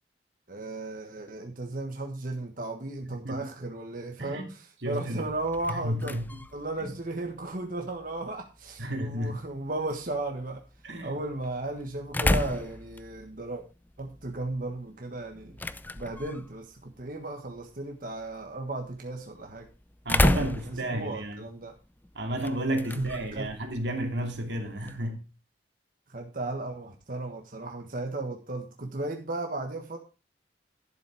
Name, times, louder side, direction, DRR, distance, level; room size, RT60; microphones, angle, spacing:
voice 1, 0.5-6.1 6.5-10.6 11.0-13.6 14.0-15.6 15.9-19.7 20.3-21.7 22.9-23.5 26.1-30.0, right 2 dB, 55° right, 1.5 m, -35 dB
voice 2, 4.8-5.3 5.7-6.4 8.8-9.4 10.8-11.2 20.0-21.4 22.1-25.2, right 1 dB, 85° right, 2.6 m, -32 dB
sound 1, 5.2-25.1, left 1 dB, 10° left, 0.5 m, -35 dB
11.5 x 7.3 x 4.8 m
head